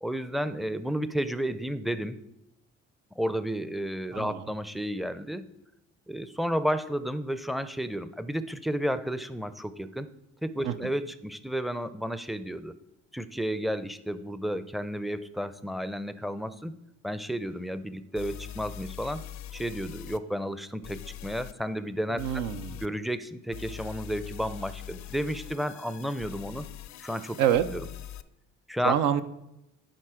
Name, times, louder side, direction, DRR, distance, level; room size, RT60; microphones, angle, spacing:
voice 1, 0.0-2.2 3.2-5.4 6.1-10.1 10.4-12.7 13.1-16.8 17.0-19.2 19.5-22.2 22.8-26.7 27.0-27.4 27.7-27.8 28.7-28.9, equal, ahead, 13 dB, 0.4 m, -32 dB
voice 2, 4.1-4.5 10.6-10.7 22.2-22.8 27.4-27.6 28.8-29.2, right 10 dB, 85° right, 11 dB, 0.6 m, -26 dB
sound 1, 17.5-17.6 18.1-20.2 20.8-21.5 22.2-22.9 23.5-28.2, left 11 dB, 65° left, 0.5 m, -42 dB
10.5 x 3.9 x 4.9 m, 0.86 s
cardioid pair, 90°, 30 cm